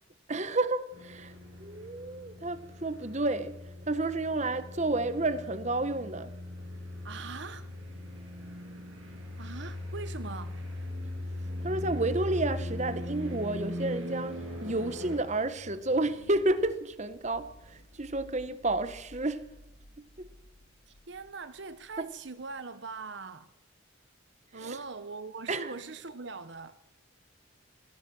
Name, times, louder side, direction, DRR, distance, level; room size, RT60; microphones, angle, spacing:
voice 1, 0.3-1.3 1.6-3.6 3.9-6.3 11.6-19.5 20.0-20.3 22.0-22.1 24.5-24.8 25.5-25.7, right 2 dB, 35° right, 1.2 m, -31 dB
sound 1, 0.9-15.2, left 1 dB, 80° right, 7.2 m, -39 dB
voice 2, 7.0-7.7 9.4-10.6 20.9-23.5 24.5-26.8, right 4 dB, 60° right, 0.9 m, -41 dB
sound 2, 14.7-22.6, equal, 70° left, 2.0 m, -55 dB
27.0 x 19.0 x 6.2 m
head